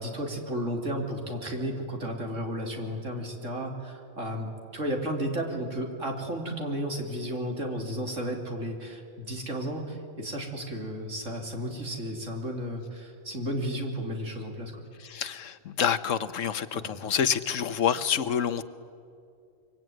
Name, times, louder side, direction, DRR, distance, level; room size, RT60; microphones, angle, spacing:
voice 1, 0.0-14.7 16.7-16.9, equal, 75° right, 1 dB, 3.5 m, -33 dB
voice 2, 15.0-18.6, left 8 dB, 80° left, 12 dB, 1.3 m, -27 dB
24.5 x 24.0 x 9.3 m, 2.5 s
omnidirectional pair, 1.3 m